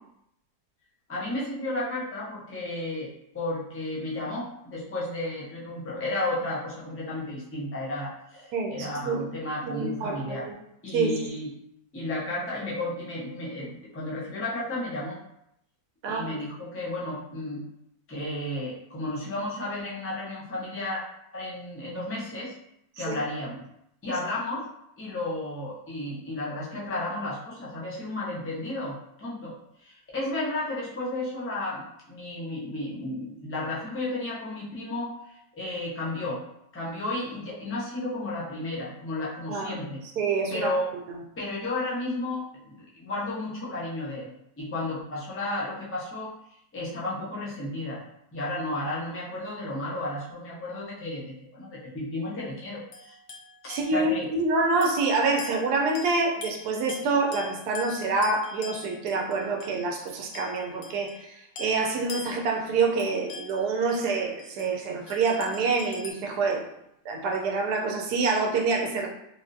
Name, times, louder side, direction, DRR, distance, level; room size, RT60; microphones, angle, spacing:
voice 1, 1.1-10.4 10.8-11.5 11.9-15.2 16.1-17.6 18.1-21.0 21.3-22.5 23.0-23.6 24.0-24.7 25.0-36.4 36.7-40.0 40.5-40.9 41.4-46.3 46.7-48.0 48.3-53.2 53.9-54.3, left 2 dB, 20° left, -6 dB, 0.3 m, -33 dB
voice 2, 8.5-9.3 9.6-10.5 10.9-11.3 16.0-16.4 23.0-23.2 39.5-39.7 40.2-40.7 41.1-41.2 53.7-66.7 67.0-69.1, right 3 dB, 90° right, 1 dB, 1.2 m, -27 dB
sound 1, 52.9-54.3 54.8-55.0 55.4-61.3 61.6-64.7 65.1-66.1, left 3 dB, 65° left, 0.8 m, -43 dB
3.5 x 2.4 x 2.6 m, 0.78 s
omnidirectional pair, 1.7 m